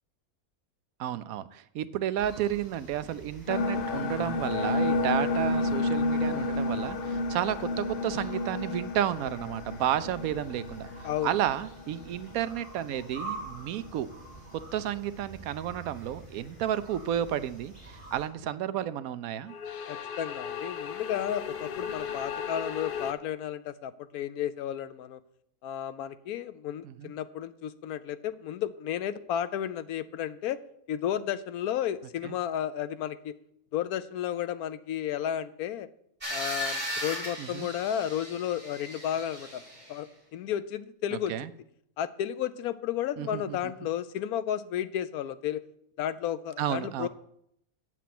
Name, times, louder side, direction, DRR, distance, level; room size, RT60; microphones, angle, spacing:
voice 1, 1.0-14.1 14.7-19.5 26.8-27.1 32.2-32.3 37.4-37.7 41.3-41.5 43.2-43.7 46.6-47.1, right 11 dB, 75° right, 14 dB, 1.0 m, -32 dB
sound 1, 2.1-18.3, right 3 dB, 5° left, 3.9 m, -47 dB
sound 2, 3.5-13.2 13.5-13.6 19.5-23.1, left 3 dB, 55° left, 0.6 m, -32 dB
voice 2, 11.0-11.4 19.9-25.2 25.6-30.6 30.9-33.4 33.7-35.9 36.3-39.6 39.9-41.3 42.0-45.6 46.0-47.1, left 10 dB, 85° left, 14 dB, 1.1 m, -33 dB
sound 3, 36.2-40.0, equal, 20° right, 3.7 m, -37 dB
8.2 x 7.7 x 5.9 m, 0.74 s
omnidirectional pair, 1.5 m